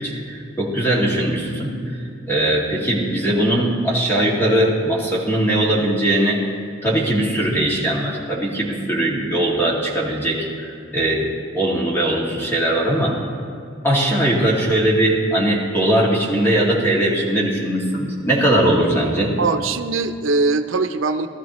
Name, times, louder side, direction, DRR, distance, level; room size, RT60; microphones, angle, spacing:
voice 1, 0.0-2.0 2.3-6.4 6.8-11.2 11.5-13.2 13.8-19.3, right 1 dB, 10° left, -4 dB, 2.3 m, -20 dB
voice 2, 19.4-21.3, right 3 dB, 90° right, 9 dB, 0.6 m, -21 dB
19.5 x 13.0 x 3.1 m, 2.4 s
head